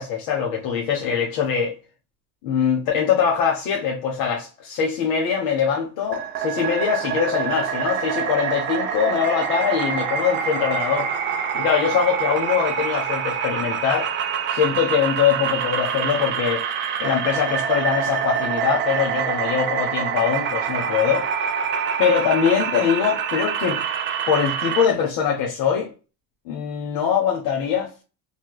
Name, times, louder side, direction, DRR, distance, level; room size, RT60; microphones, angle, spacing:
voice 1, 0.0-1.7 2.4-11.1 11.5-14.1 14.5-16.6 17.0-21.3 22.0-23.8 24.3-25.9 26.5-28.0, left 7 dB, 60° left, 1.0 m, -22 dB
sound 1, 6.1-24.9, right 7 dB, 30° right, 0.4 m, -26 dB
3.3 x 2.9 x 2.3 m
supercardioid pair, 135°, 40 cm